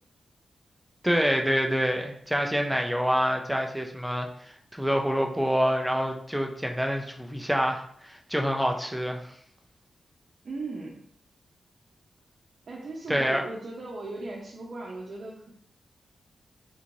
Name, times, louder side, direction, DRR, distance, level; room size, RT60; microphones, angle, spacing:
voice 1, 1.0-9.3 13.1-13.5, equal, ahead, 3 dB, 0.4 m, -27 dB
voice 2, 10.4-11.0 12.7-15.5, right 2 dB, 50° right, -4 dB, 0.7 m, -37 dB
3.7 x 3.0 x 2.6 m, 0.64 s
wide cardioid pair, 155°, 0 cm